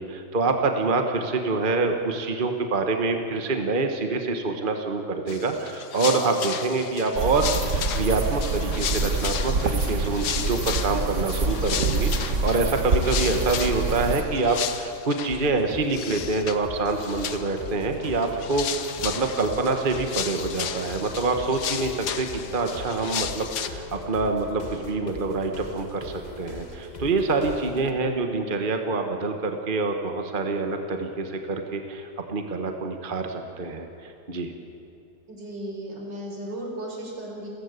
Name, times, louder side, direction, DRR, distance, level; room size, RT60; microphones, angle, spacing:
voice 1, 0.0-22.3 22.5-34.5, right 3 dB, 30° right, 5 dB, 1.5 m, -26 dB
sound 1, 5.3-15.4 15.9-16.6 16.9-17.7 18.0-23.7, left 9 dB, 70° left, 1.5 m, -34 dB
sound 2, 7.2-14.2, right 3 dB, 45° right, 1.5 m, -26 dB
sound 3, 15.3-27.9, left 2 dB, 25° left, 1.5 m, -40 dB
voice 2, 35.3-37.5, right 1 dB, 80° right, 0 dB, 5.2 m, -35 dB
30.0 x 15.0 x 8.3 m, 2.7 s
omnidirectional pair, 1.9 m